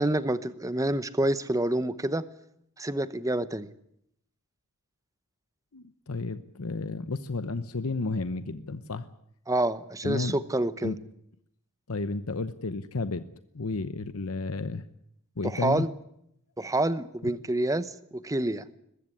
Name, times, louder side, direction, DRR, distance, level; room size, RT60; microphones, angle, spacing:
voice 1, 0.0-2.2 2.8-3.7 9.5-10.9 15.4-15.9 16.6-18.7, right 1 dB, 15° right, 14 dB, 0.8 m, -28 dB
voice 2, 5.7-9.1 10.0-10.4 10.8-11.0 11.9-13.3 13.5-14.9 15.4-15.9, left 3 dB, 75° left, 12 dB, 0.9 m, -32 dB
21.5 x 15.0 x 9.8 m, 0.77 s
head